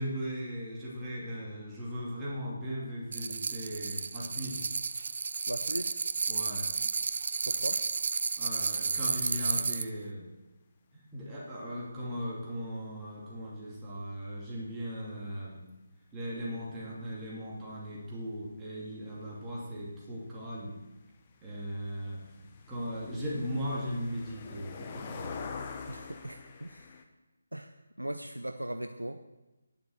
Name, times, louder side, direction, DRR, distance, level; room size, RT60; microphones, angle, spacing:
voice 1, 0.0-4.6 6.3-6.7 8.4-10.3 10.9-15.6 16.1-20.8 21.4-25.3, equal, 15° right, -6 dB, 2.5 m, -38 dB
sound 1, 3.1-9.9, right 5 dB, 45° right, 0.5 m, -32 dB
voice 2, 5.5-6.0 7.5-7.8 25.9-26.9 27.5-27.7 28.0-29.2, right 1 dB, 85° right, 7 dB, 0.7 m, -38 dB
sound 2, 19.0-19.1 19.3-27.0, left 5 dB, 25° left, 1.0 m, -45 dB
10.0 x 7.0 x 7.8 m, 1.0 s
figure-of-eight pair, 150°, 0 cm